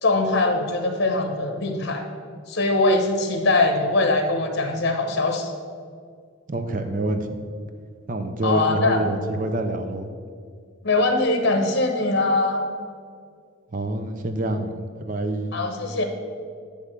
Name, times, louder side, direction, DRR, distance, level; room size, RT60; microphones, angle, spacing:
voice 1, 0.0-2.0 2.5-5.5 8.4-9.0 10.8-12.6 15.5-16.0, left 2 dB, 55° left, 5 dB, 0.9 m, -22 dB
voice 2, 6.5-7.3 8.1-10.1 13.7-15.6, right 1 dB, 40° right, 7 dB, 0.6 m, -27 dB
9.5 x 3.5 x 6.5 m, 2.1 s
head